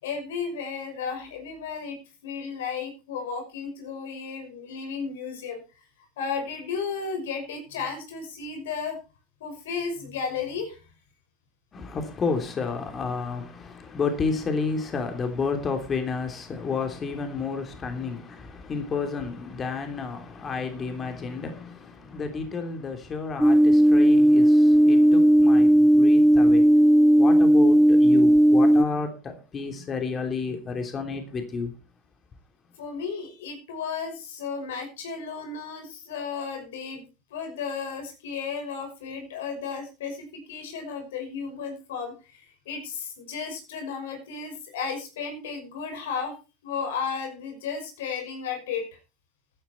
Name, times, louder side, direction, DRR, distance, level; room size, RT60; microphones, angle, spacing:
voice 1, 0.0-2.0 2.2-5.6 6.2-9.0 9.4-10.8 22.1-22.2 24.1-24.2 32.8-37.0 37.3-46.3 46.6-48.8, left 5 dB, 85° left, 5.7 m, -34 dB
voice 2, 11.7-31.7, left 4 dB, 30° left, 3.1 m, -31 dB
sound 1, 23.4-28.8, right 1 dB, ahead, 0.9 m, -16 dB
15.0 x 9.9 x 4.4 m
supercardioid pair, 100°, 0 cm